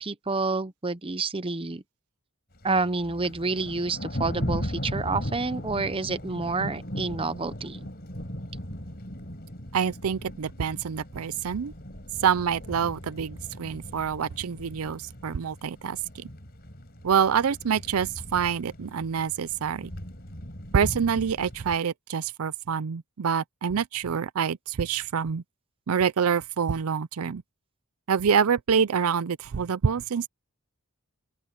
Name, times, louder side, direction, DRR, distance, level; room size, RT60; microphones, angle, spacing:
voice 1, 0.0-1.8 2.6-7.9, right 3 dB, 25° right, 0.8 m, -29 dB
Thunder, 2.6-21.8, equal, 45° left, 4.5 m, -38 dB
voice 2, 9.7-11.7 12.2-16.0 17.0-19.9 20.7-25.4 25.9-27.4 28.1-30.3, right 7 dB, 80° right, 0.5 m, -26 dB
open air
head